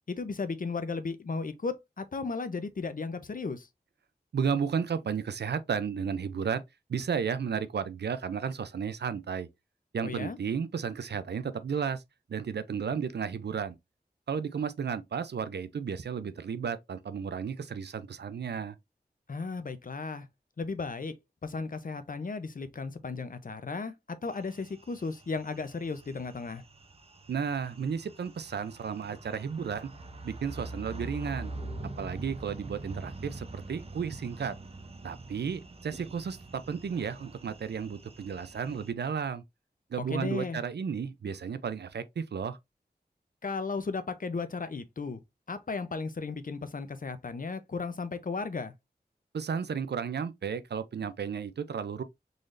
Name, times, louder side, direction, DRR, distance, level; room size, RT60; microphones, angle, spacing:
voice 1, 0.1-3.7 10.0-10.4 19.3-20.3 20.6-21.1 21.4-23.9 24.2-26.6 40.1-40.6 43.4-45.2 45.5-48.7, left 4 dB, 55° left, 0.6 m, -35 dB
voice 2, 4.3-6.6 6.9-9.5 9.9-12.0 12.3-13.8 14.3-18.7 27.3-29.9 30.2-31.5 32.0-34.6 35.0-39.4 39.9-42.6 49.3-52.0, right 6 dB, 85° right, 0.4 m, -33 dB
sound 1, 24.3-38.9, right 2 dB, 35° right, 0.6 m, -44 dB
3.9 x 3.2 x 2.5 m
wide cardioid pair, 60°, 17 cm